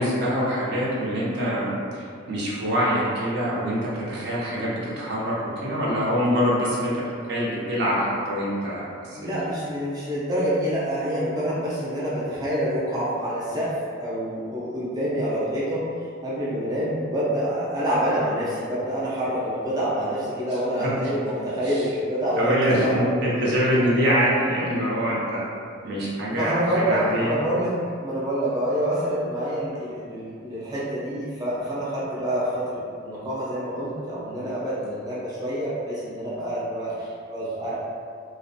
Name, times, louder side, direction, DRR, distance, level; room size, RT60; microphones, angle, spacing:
voice 1, 0.0-7.0 7.3-9.4 20.8-20.9 21.6-21.8 22.4-25.4 25.8-27.3, equal, 60° right, -6 dB, 0.6 m, -24 dB
voice 2, 9.2-13.8 14.0-15.8 16.2-22.6 22.8-23.1 26.3-27.7 28.0-36.9 37.3-37.7, equal, 20° right, -9 dB, 0.4 m, -27 dB
2.5 x 2.1 x 2.6 m, 2.3 s
head